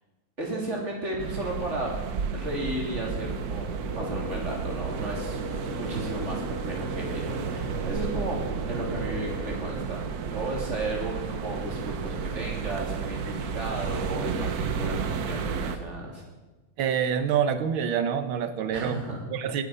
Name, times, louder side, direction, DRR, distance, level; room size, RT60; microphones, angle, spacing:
voice 1, 0.4-1.9 2.3-8.4 8.6-16.2 18.7-19.3, right 1 dB, 35° right, -2 dB, 3.3 m, -34 dB
sound 1, 1.2-15.8, right 6 dB, 60° right, 1.2 m, -32 dB
sound 2, 3.8-9.6, left 1 dB, 35° left, 3.7 m, -38 dB
voice 2, 16.8-19.0 19.3-19.6, right 8 dB, 80° right, 10 dB, 1.7 m, -26 dB
18.5 x 9.1 x 5.5 m, 1.2 s
omnidirectional pair, 2.2 m